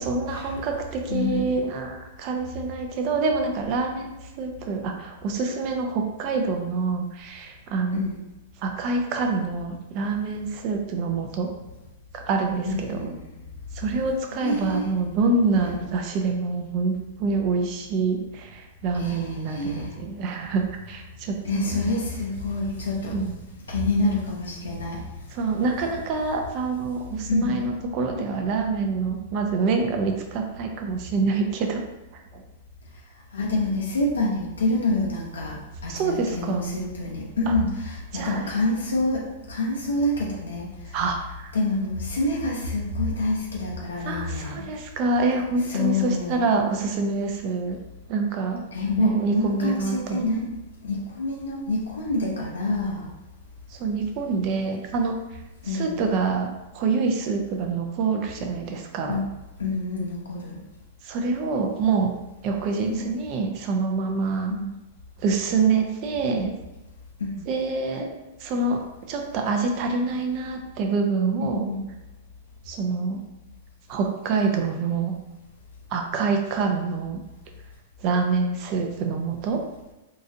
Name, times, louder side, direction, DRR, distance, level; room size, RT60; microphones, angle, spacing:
voice 1, 0.0-8.1 8.6-11.5 12.1-13.1 13.7-21.8 23.1-23.4 25.3-31.8 32.3-32.4 35.9-36.7 37.5-37.6 38.1-38.5 40.9-41.5 44.1-47.8 48.1-48.6 49.0-50.3 53.7-55.2 55.7-56.5 56.7-59.2 61.0-62.1 62.4-64.5 65.2-66.5 67.5-68.1 68.4-68.8 69.1-71.7 72.7-73.2 73.9-75.2 75.9-77.2 78.0-79.6, right 4 dB, 45° right, 3 dB, 0.6 m, -26 dB
voice 2, 1.1-1.5 7.9-8.1 12.6-13.4 14.4-14.9 15.6-15.8 18.9-19.9 21.4-23.2 23.7-25.0 27.3-27.5 33.3-40.7 41.5-44.6 45.7-46.4 48.7-50.5 50.8-53.1 55.6-56.0 59.1-59.2 59.6-60.6 62.8-63.1 64.5-64.7 67.2-67.4 71.4-71.9 76.1-76.3, left 2 dB, 90° left, -3 dB, 0.6 m, -27 dB
3.9 x 2.5 x 2.6 m, 1.0 s
hypercardioid pair, 110°, 0 cm